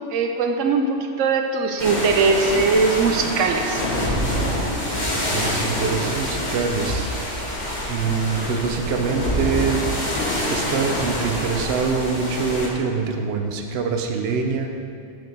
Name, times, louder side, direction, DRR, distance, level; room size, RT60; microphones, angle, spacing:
voice 1, 0.1-3.8, right 4 dB, 85° right, 4 dB, 1.0 m, -20 dB
sound 1, 1.8-12.7, left 1 dB, 40° left, 1.5 m, -26 dB
voice 2, 5.3-7.1 7.9-9.9 10.5-14.7, right 5 dB, 60° right, 4 dB, 0.9 m, -24 dB
7.4 x 5.2 x 6.6 m, 2.3 s
omnidirectional pair, 1.3 m